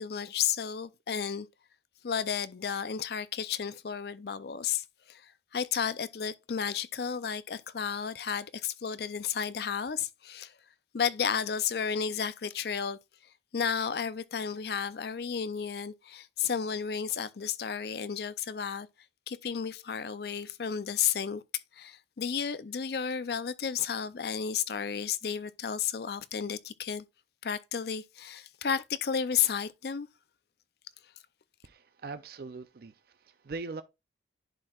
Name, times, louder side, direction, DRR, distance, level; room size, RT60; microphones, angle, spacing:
voice 1, 0.0-1.5 2.0-10.5 10.9-13.0 13.5-18.9 19.3-21.4 21.8-27.0 27.4-30.1, left 7 dB, 55° left, 0.5 m, -32 dB
voice 2, 31.6-33.8, right 3 dB, 55° right, 0.4 m, -41 dB
10.5 x 4.5 x 2.3 m
head